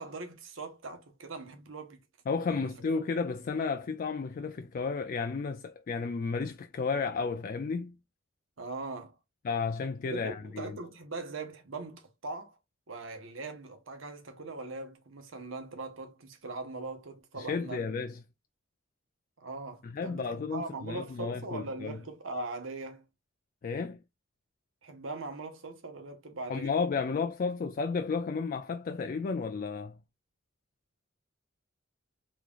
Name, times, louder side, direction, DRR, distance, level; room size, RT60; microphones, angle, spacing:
voice 1, 0.0-2.0 2.5-2.7 8.6-9.1 10.1-12.6 12.9-18.0 19.4-23.0 24.8-26.7, right 3 dB, 90° right, 1.0 m, -41 dB
voice 2, 2.3-8.0 9.4-10.7 17.4-18.2 19.8-22.0 23.6-24.0 26.5-30.0, left 4 dB, 45° left, 0.3 m, -32 dB
3.6 x 3.1 x 2.3 m
head